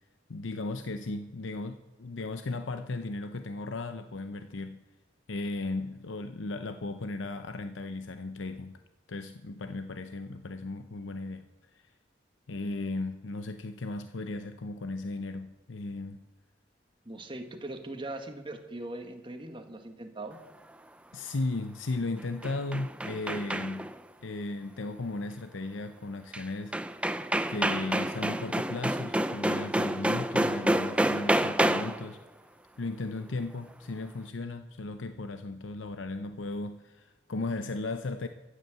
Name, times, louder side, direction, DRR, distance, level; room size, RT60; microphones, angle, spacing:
voice 1, 0.3-4.8 5.3-8.8 9.1-11.8 12.5-16.2 21.1-23.9 24.2-26.8 27.5-32.2 32.8-38.3, left 2 dB, 90° left, 9 dB, 0.7 m, -36 dB
voice 2, 17.0-20.4, right 2 dB, 25° right, 5 dB, 1.6 m, -40 dB
sound 1, 22.2-24.0 26.3-26.4 26.7-32.1, right 1 dB, 5° right, 0.5 m, -28 dB
14.5 x 8.5 x 7.8 m, 1.2 s
head